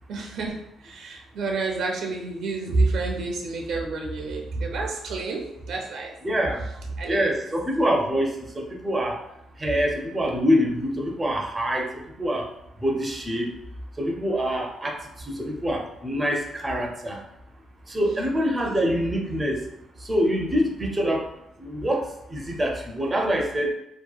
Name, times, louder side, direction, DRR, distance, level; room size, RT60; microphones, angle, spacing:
voice 1, 0.1-6.1 7.0-7.3, right 3 dB, 70° right, 1 dB, 0.5 m, -28 dB
voice 2, 6.2-6.6 7.1-9.2 9.6-12.5 12.8-13.5 14.0-15.0 15.2-17.2 17.9-19.6 20.0-21.2 21.6-23.7, equal, 20° right, 1 dB, 0.5 m, -25 dB
2.8 x 2.1 x 2.3 m, 0.82 s
cardioid pair, 90°, 0 cm